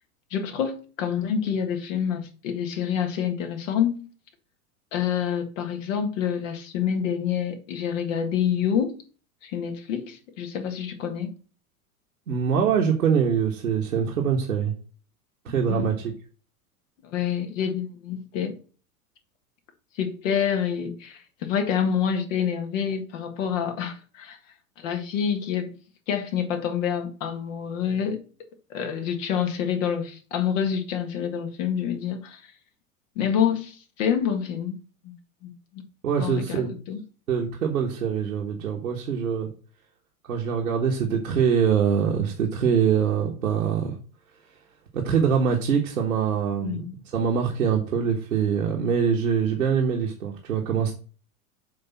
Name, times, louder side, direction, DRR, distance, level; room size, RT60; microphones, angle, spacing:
voice 1, 0.3-4.1 4.9-9.0 9.4-11.3 15.7-15.9 17.0-18.6 20.0-24.4 24.8-25.7 26.1-28.2 28.7-32.5 33.2-34.8 35.0-35.1 35.4-35.8 36.2-37.0 46.6-47.0, left 8 dB, 60° left, 1.8 m, -27 dB
voice 2, 12.3-14.7 15.4-16.1 36.0-36.7 37.3-39.5 40.3-43.9 44.9-46.8 47.1-50.9, right 7 dB, 85° right, 1.5 m, -24 dB
7.6 x 3.6 x 5.7 m
hypercardioid pair, 95°, 42 cm